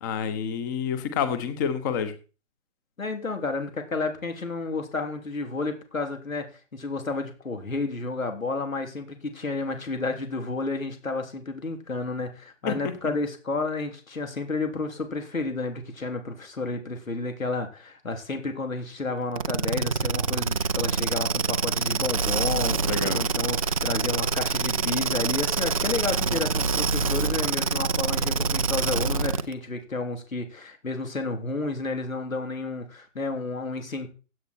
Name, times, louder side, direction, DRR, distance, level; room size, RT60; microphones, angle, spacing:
voice 1, 0.0-2.1 12.7-12.9 22.9-23.2, left 7 dB, 15° left, 1.1 m, -28 dB
voice 2, 3.0-34.1, left 3 dB, 80° left, 3.5 m, -31 dB
sound 1, 19.4-29.5, right 4 dB, 25° right, 0.5 m, -26 dB
16.0 x 9.1 x 4.5 m
figure-of-eight pair, 150°, 40 cm